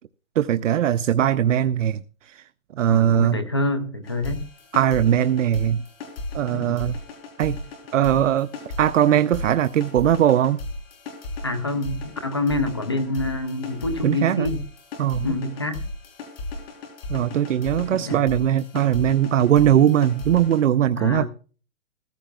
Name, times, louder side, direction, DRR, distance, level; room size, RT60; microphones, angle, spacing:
voice 1, 0.4-2.4 2.8-3.4 4.7-5.8 6.3-6.9 7.4-7.6 7.9-8.5 8.8-10.6 14.0-14.5 15.0-15.3 17.1-21.3, right 10 dB, 65° right, 0.6 m, -20 dB
voice 2, 2.9-4.5 6.5-6.8 11.4-14.6 15.2-15.8 17.9-18.2 21.0-21.3, left 2 dB, 20° left, 0.4 m, -27 dB
sound 1, 4.0-20.6, left 2 dB, 45° left, 3.7 m, -35 dB
14.5 x 14.5 x 2.3 m
hypercardioid pair, 165°, 41 cm